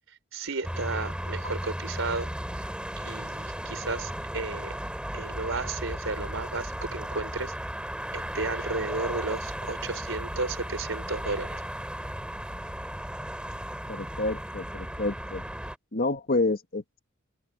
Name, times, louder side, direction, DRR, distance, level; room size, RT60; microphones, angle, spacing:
voice 1, 0.3-2.7 3.0-4.8 5.1-7.5 8.1-11.6, right 3 dB, 75° right, 4.2 m, -33 dB
sound 1, 0.6-15.8, equal, 5° right, 4.2 m, -35 dB
voice 2, 13.9-15.4 15.9-17.0, left 2 dB, 50° left, 1.8 m, -29 dB
head